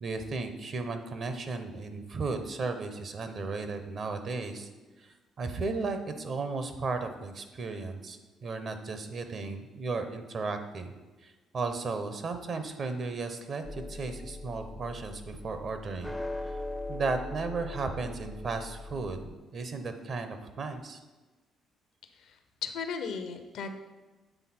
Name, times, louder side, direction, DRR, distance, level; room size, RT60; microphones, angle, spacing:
voice 1, 0.0-4.7 5.0-10.9 11.2-16.1 16.9-21.0, right 3 dB, 55° right, 8 dB, 0.8 m, -35 dB
sound 1, 13.6-19.3, left 2 dB, 5° left, 0.4 m, -40 dB
voice 2, 22.6-23.7, left 5 dB, 75° left, 8 dB, 0.6 m, -35 dB
8.0 x 3.6 x 4.3 m, 1.2 s
supercardioid pair, 75°, 0 cm